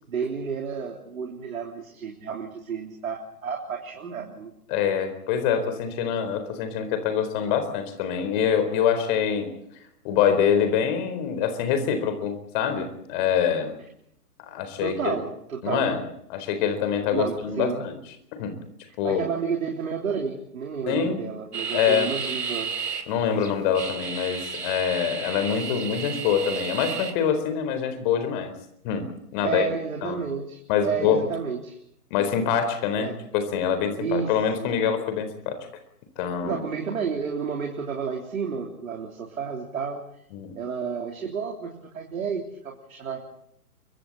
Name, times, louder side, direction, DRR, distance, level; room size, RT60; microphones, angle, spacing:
voice 1, 0.1-4.5 14.8-15.9 17.1-17.8 19.0-22.7 29.4-31.8 33.0-33.2 34.0-34.3 34.6-34.8 36.4-40.0 40.6-43.2, right 6 dB, 60° right, 1 dB, 3.8 m, -31 dB
voice 2, 4.7-9.5 10.0-13.7 14.5-15.2 15.6-16.0 16.3-17.9 18.4-18.6 19.0-19.2 20.9-21.2 21.7-22.1 23.1-28.5 28.8-29.7 30.0-30.2 30.7-31.2 32.1-35.6 36.2-36.6 40.3-40.6, left 8 dB, 30° left, 9 dB, 4.3 m, -25 dB
sound 1, 21.5-23.0 23.4-27.1, right 5 dB, 80° right, 4.3 m, -32 dB
29.0 x 24.5 x 4.2 m, 0.72 s
figure-of-eight pair, 130°, 47 cm